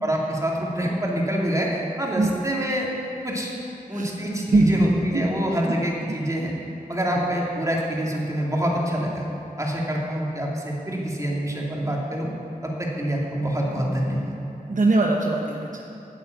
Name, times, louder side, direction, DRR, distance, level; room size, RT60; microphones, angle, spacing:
voice 1, 0.0-2.9 3.2-3.5 3.9-6.5 6.9-9.2 9.6-12.3 12.6-14.4, equal, 20° right, -3 dB, 2.4 m, -26 dB
voice 2, 4.5-5.3 14.7-15.8, right 2 dB, 65° right, 1 dB, 0.9 m, -21 dB
9.2 x 8.3 x 8.0 m, 2.8 s
wide cardioid pair, 65°, 15 cm